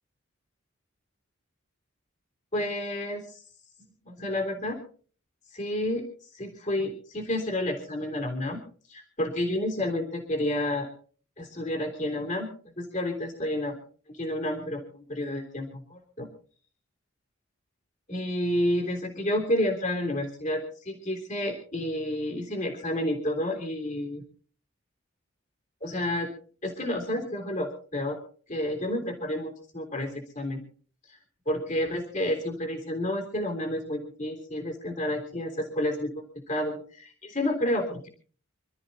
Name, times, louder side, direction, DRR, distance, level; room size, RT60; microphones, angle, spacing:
voice 1, 2.5-3.4 4.0-4.8 5.5-6.0 6.3-8.6 8.9-10.9 11.4-12.5 12.8-13.8 14.1-14.8 15.1-16.3 18.1-24.2 25.8-26.3 26.6-28.2 28.5-30.6 31.1-31.2 31.5-36.8 37.2-38.1, left 1 dB, 35° left, 4 dB, 3.6 m, -30 dB
27.0 x 13.5 x 2.8 m, 0.43 s
head